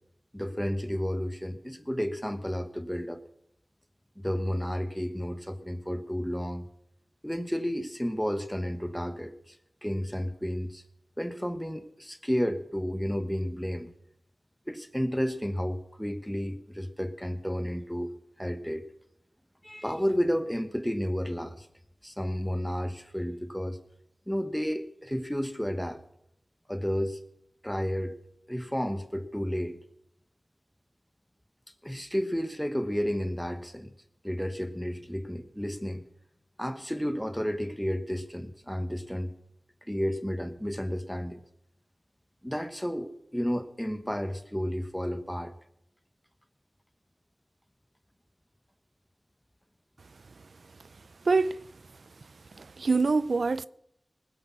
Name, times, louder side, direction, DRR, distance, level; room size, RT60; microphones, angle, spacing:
voice 1, 0.3-3.2 4.2-6.6 7.2-9.6 9.8-10.8 11.2-13.9 14.7-18.1 18.4-18.8 19.6-21.7 22.0-23.8 24.3-26.0 26.7-27.2 27.6-28.2 28.5-29.8 31.8-33.9 34.2-36.0 36.6-39.3 39.9-41.4 42.4-45.5, equal, 5° left, 1.2 m, -32 dB
voice 2, 51.3-51.6 52.6-53.7, right 4 dB, 70° right, 0.4 m, -25 dB
19.5 x 8.3 x 6.0 m
wide cardioid pair, 55°, 0 cm